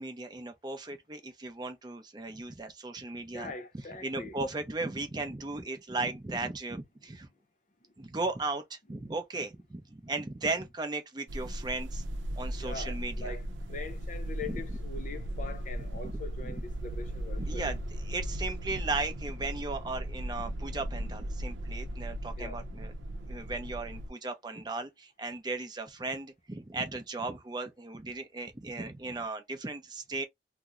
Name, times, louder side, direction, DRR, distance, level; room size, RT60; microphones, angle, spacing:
voice 1, 0.0-3.5 4.0-7.3 8.0-12.0 12.4-13.3 14.5-14.6 16.4-16.5 17.4-17.8 18.0-22.9 23.3-30.2, right 3 dB, 25° right, 0.5 m, -36 dB
voice 2, 3.3-4.4 12.6-13.4 13.7-17.7 22.4-22.6, left 3 dB, 40° left, 0.5 m, -42 dB
sound 1, 11.3-24.1, right 1 dB, 90° right, 0.6 m, -37 dB
2.8 x 2.0 x 3.6 m
head